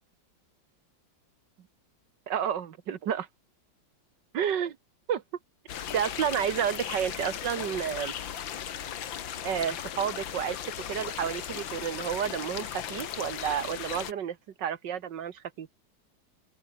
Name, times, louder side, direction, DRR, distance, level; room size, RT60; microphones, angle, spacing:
voice 1, 2.3-3.3 4.3-4.8 5.1-5.2 5.9-8.1 9.4-10.6 10.9-15.7, right 8 dB, 70° right, 1.9 m, -30 dB
sound 1, 5.7-14.1, left 9 dB, 85° left, 2.1 m, -37 dB
open air
omnidirectional pair, 2.0 m